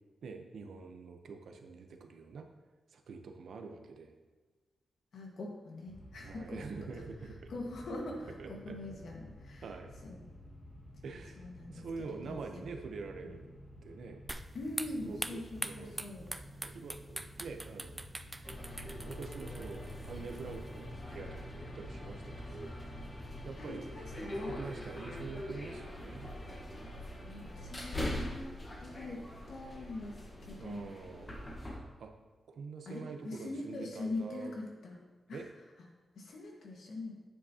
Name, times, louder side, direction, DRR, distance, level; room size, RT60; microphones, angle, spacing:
voice 1, 0.2-2.5 2.9-4.1 6.2-7.5 8.4-8.8 9.6-9.9 11.0-13.4 13.8-14.2 15.0-16.2 16.6-18.5 19.0-22.7 23.4-23.9 24.4-26.3 30.6-31.3 32.0-32.1 32.5-34.5 35.3-35.5, right 4 dB, 75° right, 5 dB, 0.8 m, -46 dB
voice 2, 5.1-6.6 6.9-7.0 7.5-9.6 10.0-10.2 11.4-12.7 13.2-13.3 14.5-16.3 23.6-24.6 27.2-28.5 28.8-29.2 29.5-30.9 32.8-35.0 35.3-35.4 36.1-37.1, left 2 dB, 75° left, -1 dB, 1.6 m, -43 dB
sound 1, 5.9-25.4, equal, 5° left, 1.2 m, -52 dB
sound 2, 14.3-20.9, right 2 dB, 15° right, 0.3 m, -44 dB
sound 3, 18.4-31.8, left 1 dB, 25° left, 1.3 m, -43 dB
9.1 x 7.2 x 2.9 m, 1.3 s
wide cardioid pair, 135°, 0 cm